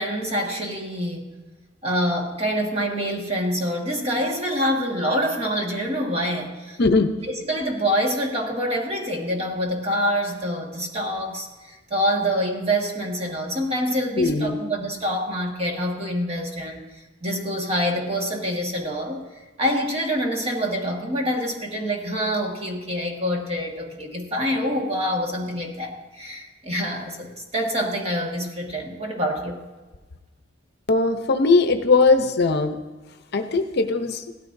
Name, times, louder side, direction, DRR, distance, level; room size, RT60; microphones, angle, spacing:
voice 1, 0.0-1.3 1.8-6.8 7.2-16.9 17.2-19.2 19.6-29.6, equal, 30° right, 1 dB, 1.5 m, -26 dB
voice 2, 6.8-7.1 14.2-14.6 30.9-32.8 33.3-34.2, left 3 dB, 55° left, 8 dB, 0.7 m, -19 dB
17.0 x 13.0 x 2.6 m, 1.2 s
head